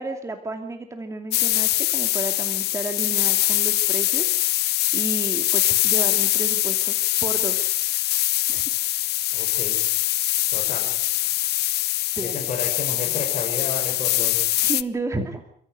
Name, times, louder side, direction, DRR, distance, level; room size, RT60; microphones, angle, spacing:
voice 1, 0.0-6.9 7.2-7.8 8.5-8.6 12.2-12.4 14.5-15.4, right 2 dB, 15° right, 5 dB, 2.6 m, -32 dB
sound 1, 1.3-14.8, left 16 dB, 75° left, 0.8 m, -23 dB
voice 2, 9.3-9.8 10.5-10.9 12.2-14.4, left 5 dB, 45° left, 2 dB, 5.4 m, -32 dB
29.0 x 14.5 x 8.0 m, 0.66 s
cardioid pair, 110°, 17 cm